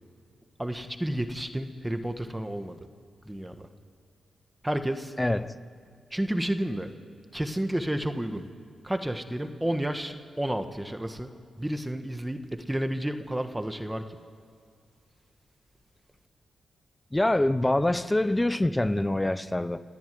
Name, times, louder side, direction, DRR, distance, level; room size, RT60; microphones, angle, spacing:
voice 1, 0.6-2.8 3.2-3.7 4.6-5.1 6.1-6.9 7.3-8.4 8.8-11.3 11.6-14.2, right 1 dB, 10° right, 1.7 m, -31 dB
voice 2, 5.2-5.5 17.1-19.8, left 1 dB, 15° left, 1.0 m, -25 dB
30.0 x 13.5 x 9.5 m
cardioid pair, 60°, 0 cm